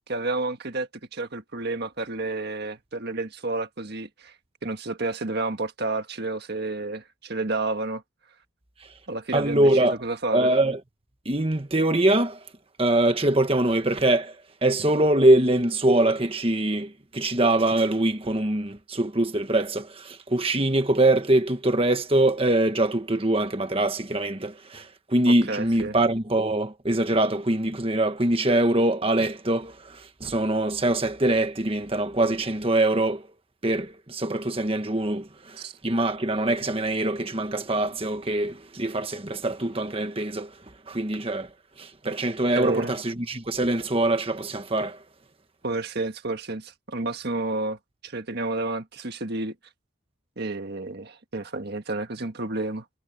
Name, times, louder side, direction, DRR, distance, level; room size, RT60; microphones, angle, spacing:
voice 1, 0.1-4.3 4.6-8.0 9.1-10.5 25.5-26.0 35.6-35.7 42.5-42.9 45.6-49.5 50.4-52.8, right 2 dB, 50° right, 1.7 m, -30 dB
voice 2, 9.3-10.0 10.3-10.8 11.2-12.4 12.8-14.4 14.6-33.3 33.6-40.5 40.9-41.5 41.8-45.0, right 1 dB, 25° right, 1.4 m, -23 dB
head